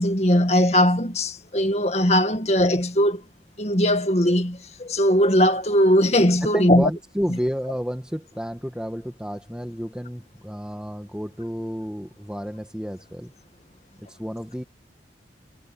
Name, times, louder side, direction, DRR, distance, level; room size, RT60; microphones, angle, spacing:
voice 1, 0.0-3.2 3.6-6.9 7.3-7.4, equal, 40° left, 2.1 m, -20 dB
voice 2, 6.5-13.3 14.0-14.6, equal, 5° right, 1.8 m, -31 dB
head